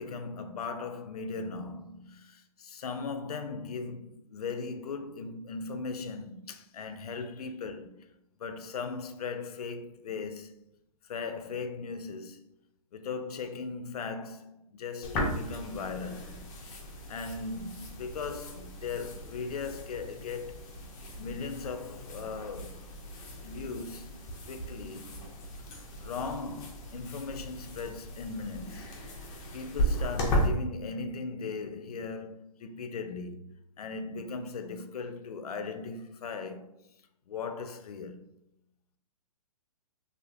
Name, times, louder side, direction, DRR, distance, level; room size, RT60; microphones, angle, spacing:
voice 1, 0.0-8.0 8.4-10.6 11.0-12.4 12.9-16.5 17.1-20.6 21.2-22.8 23.4-24.2 24.5-25.1 26.0-28.9 29.5-33.4 33.8-36.8 37.3-38.2, left 4 dB, 90° left, 0.4 m, -38 dB
sound 1, 15.0-30.5, equal, 20° left, 0.4 m, -36 dB
2.5 x 2.5 x 2.3 m
hypercardioid pair, 140°, 19 cm